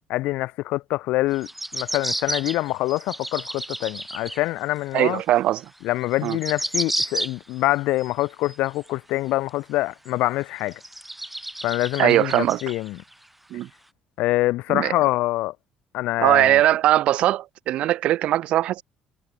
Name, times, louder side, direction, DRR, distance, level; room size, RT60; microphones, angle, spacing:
voice 1, 0.1-5.2 5.8-10.8 11.6-13.0 14.2-15.5 15.9-16.6, left 18 dB, 75° left, 3.2 m, -25 dB
sound 1, 1.3-4.4 4.9-5.0 5.8-5.9 6.0-7.6 8.0-8.9 9.5-9.6 10.1-10.2 10.7-13.1 13.6-13.7, right 1 dB, 5° right, 3.3 m, -31 dB
voice 2, 4.9-5.7 6.2-6.4 12.0-12.6 13.5-13.7 14.7-15.0 16.2-18.8, right 13 dB, 65° right, 3.2 m, -20 dB
cardioid pair, 110°, 2 cm